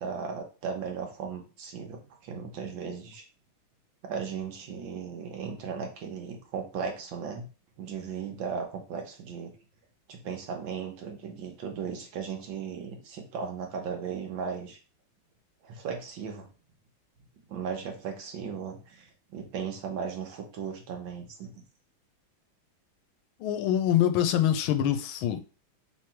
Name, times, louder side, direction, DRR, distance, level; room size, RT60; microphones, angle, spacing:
voice 1, 0.0-3.2 4.0-7.5 7.8-9.5 10.1-14.8 15.6-16.5 17.5-21.5, right 6 dB, 75° right, 1.7 m, -36 dB
voice 2, 23.4-25.4, left 10 dB, 90° left, 1.4 m, -25 dB
3.7 x 3.1 x 4.4 m
omnidirectional pair, 2.2 m